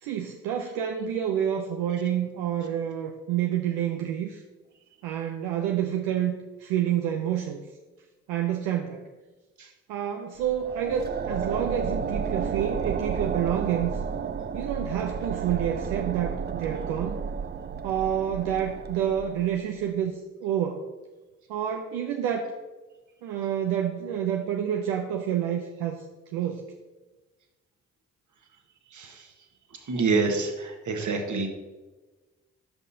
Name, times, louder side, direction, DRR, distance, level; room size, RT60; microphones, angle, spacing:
voice 1, 0.0-4.4 5.0-7.6 8.3-9.0 9.9-14.0 14.5-17.2 17.8-20.8 21.5-22.5 23.2-26.0 26.3-26.7, right 10 dB, 85° right, 3 dB, 0.6 m, -28 dB
sound 1, 10.4-19.7, right 6 dB, 30° right, 0.5 m, -32 dB
voice 2, 29.9-31.5, right 4 dB, 55° right, 4 dB, 1.5 m, -26 dB
12.0 x 5.4 x 2.7 m, 1.2 s
hypercardioid pair, 40°, 35 cm